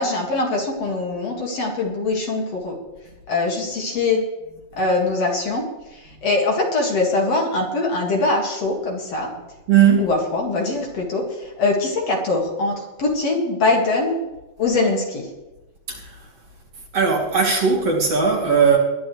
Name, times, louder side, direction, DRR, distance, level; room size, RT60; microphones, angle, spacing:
voice 1, 0.0-2.8 3.3-4.2 4.8-5.6 6.2-9.3 10.0-14.2 14.6-15.3, left 3 dB, 50° left, -1 dB, 2.8 m, -22 dB
voice 2, 9.7-10.1 15.9-16.2 16.9-18.8, right 6 dB, 45° right, -2 dB, 3.4 m, -18 dB
21.5 x 11.0 x 3.2 m, 1.1 s
omnidirectional pair, 4.1 m